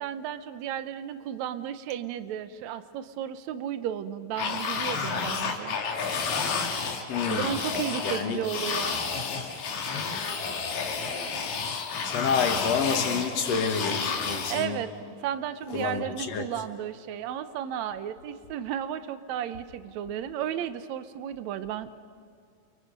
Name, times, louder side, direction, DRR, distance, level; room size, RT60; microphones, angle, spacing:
voice 1, 0.0-5.8 7.3-9.0 14.5-14.9 15.2-21.9, right 10 dB, 70° right, 2.0 m, -33 dB
sound 1, 4.4-14.7, left 5 dB, 85° left, 3.7 m, -31 dB
voice 2, 7.1-7.6 8.0-8.4 12.0-14.8 15.7-16.4, left 6 dB, 55° left, 2.5 m, -28 dB
29.5 x 29.5 x 5.3 m
omnidirectional pair, 3.8 m